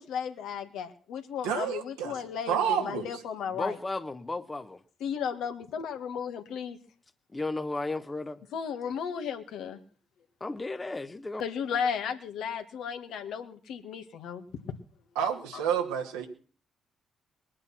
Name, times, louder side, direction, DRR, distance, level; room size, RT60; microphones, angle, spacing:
voice 1, 0.0-3.8 5.0-6.8 8.5-9.8 11.4-14.8, left 7 dB, 70° left, 1.9 m, -34 dB
voice 2, 1.4-2.2 2.5-3.2 15.2-16.3, right 8 dB, 80° right, 2.4 m, -29 dB
voice 3, 3.5-4.8 7.3-8.4 10.4-11.4, left 2 dB, 25° left, 1.2 m, -34 dB
21.5 x 8.9 x 6.1 m
hypercardioid pair, 45°, 0 cm